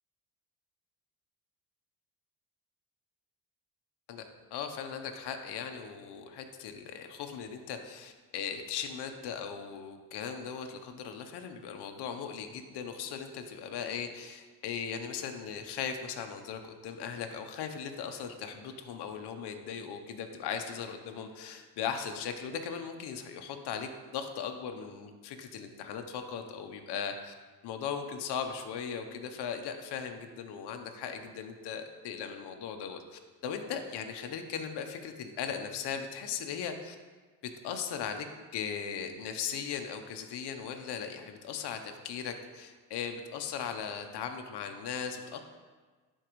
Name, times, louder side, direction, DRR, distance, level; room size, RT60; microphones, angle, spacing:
voice 1, 4.5-27.3 27.6-37.0 37.6-38.3 38.5-45.4, left 7 dB, 75° left, 5 dB, 0.8 m, -38 dB
11.5 x 4.5 x 3.1 m, 1.4 s
cardioid pair, 85°, 41 cm